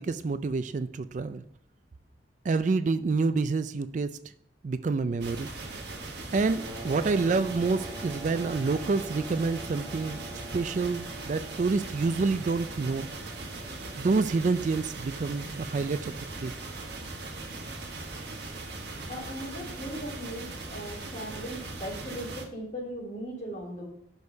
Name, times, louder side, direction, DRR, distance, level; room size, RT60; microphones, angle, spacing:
voice 1, 0.0-1.4 2.4-4.1 4.6-5.5 6.3-10.2 10.5-13.1 14.0-16.5, right 4 dB, 45° right, 12 dB, 0.4 m, -28 dB
sound 1, 5.2-22.4, right 2 dB, 65° right, 1.5 m, -39 dB
sound 2, 6.6-15.0, right 1 dB, 30° right, 1.1 m, -46 dB
voice 2, 19.1-23.9, equal, 45° left, -4 dB, 3.5 m, -38 dB
6.2 x 5.3 x 6.4 m, 0.68 s
head